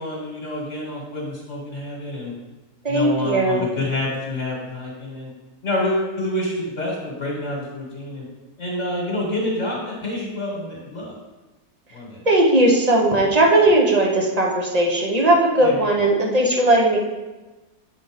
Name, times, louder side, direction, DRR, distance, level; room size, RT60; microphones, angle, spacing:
voice 1, 0.0-2.3 2.9-5.3 5.6-8.3 8.6-11.1 11.9-12.2 15.6-15.9, left 1 dB, 50° left, -3 dB, 1.7 m, -27 dB
voice 2, 2.8-3.7 12.3-17.0, right 1 dB, 30° right, -1 dB, 1.0 m, -18 dB
8.0 x 3.9 x 5.0 m, 1.1 s
omnidirectional pair, 1.6 m